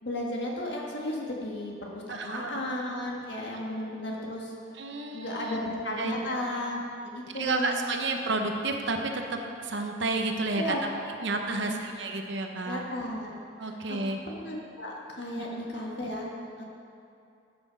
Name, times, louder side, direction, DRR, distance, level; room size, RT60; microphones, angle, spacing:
voice 1, 0.0-4.5 5.1-7.9 10.5-11.0 11.5-11.8 12.6-13.3 13.6-14.0 14.3-16.6, left 1 dB, 60° left, -2 dB, 1.6 m, -34 dB
voice 2, 2.1-2.5 4.8-5.6 5.9-6.4 7.3-10.8 11.2-12.8 13.6-14.2 15.4-15.5, right 3 dB, 60° right, 4 dB, 0.8 m, -31 dB
11.5 x 6.2 x 5.2 m, 2.6 s
head